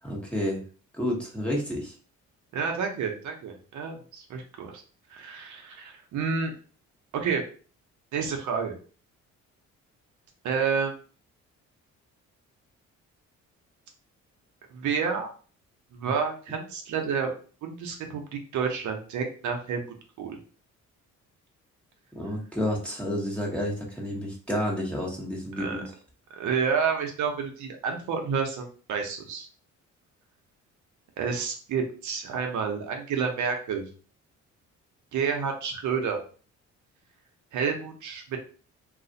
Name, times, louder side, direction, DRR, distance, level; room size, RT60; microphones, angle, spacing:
voice 1, 0.0-0.6 1.0-1.9 22.1-25.8, equal, 5° left, -3 dB, 1.1 m, -30 dB
voice 2, 2.5-4.8 5.1-6.5 7.1-7.4 8.1-8.7 10.4-11.0 14.7-15.3 15.9-17.3 17.6-19.9 20.2-20.4 25.6-25.8 26.3-29.5 31.2-33.8 35.1-36.2 37.5-38.4, right 6 dB, 75° right, 3 dB, 0.8 m, -29 dB
2.4 x 2.4 x 3.9 m, 0.40 s
cardioid pair, 90°, 30 cm